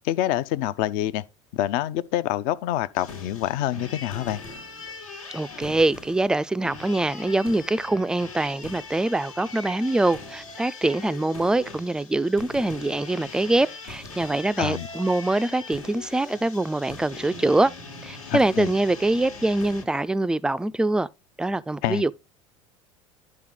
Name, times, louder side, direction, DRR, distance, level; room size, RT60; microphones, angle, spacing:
voice 1, 0.0-1.2 1.5-4.4 14.6-14.9 18.3-18.7 21.8-22.0, left 13 dB, 55° left, 0.6 m, -26 dB
sound 1, 2.9-19.8, left 3 dB, 80° left, 1.4 m, -41 dB
voice 2, 5.3-17.7 18.0-21.1 21.4-22.1, right 2 dB, 5° right, 0.3 m, -24 dB
11.0 x 4.2 x 3.8 m
figure-of-eight pair, 70°, 17 cm